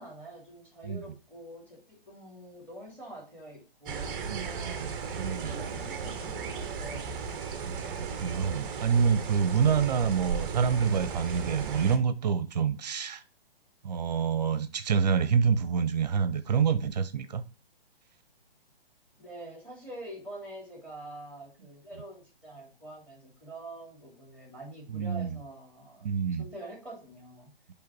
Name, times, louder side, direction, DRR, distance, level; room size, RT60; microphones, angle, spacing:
voice 1, 0.0-4.9 5.4-7.2 19.2-27.5, right 1 dB, 5° left, 3.2 m, -46 dB
sound 1, 3.9-12.0, right 6 dB, 20° right, 0.9 m, -36 dB
voice 2, 4.3-5.5 7.6-13.2 13.8-17.4 24.9-25.4 26.0-26.5, right 6 dB, 45° right, 0.9 m, -27 dB
9.7 x 3.6 x 4.6 m
figure-of-eight pair, 130°, 30 cm